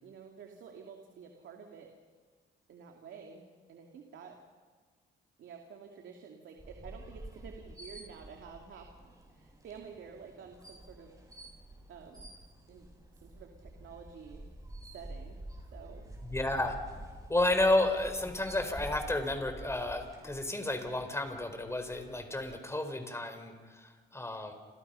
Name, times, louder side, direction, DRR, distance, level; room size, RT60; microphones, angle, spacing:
voice 1, 0.0-1.9 2.7-4.4 5.4-11.2 11.9-12.3 12.7-12.9 13.2-14.4 14.9-15.4 15.7-16.0 17.8-17.9, right 6 dB, 70° right, 2 dB, 2.8 m, -50 dB
sound 1, 6.6-22.5, right 1 dB, 15° right, 6.9 m, -49 dB
voice 2, 16.2-16.8 17.3-24.5, left 2 dB, 15° left, 7 dB, 4.7 m, -31 dB
29.5 x 29.0 x 5.8 m, 1.5 s
cardioid pair, 90°, 20 cm